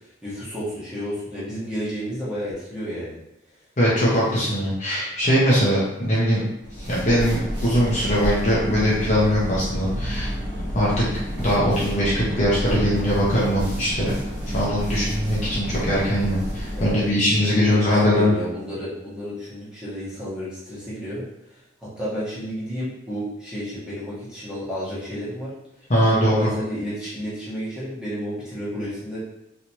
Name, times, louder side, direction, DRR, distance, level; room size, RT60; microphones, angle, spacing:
voice 1, 0.2-3.2 16.7-25.5 26.1-29.2, equal, 5° right, -11 dB, 1.2 m, -31 dB
voice 2, 3.8-6.4 6.8-10.3 10.7-11.0 11.4-14.0 14.5-18.3 25.9-26.5, equal, 35° left, -7 dB, 0.7 m, -21 dB
sound 1, 6.6-17.1, equal, 55° right, 1.3 m, -29 dB
3.2 x 2.9 x 2.9 m, 0.85 s
head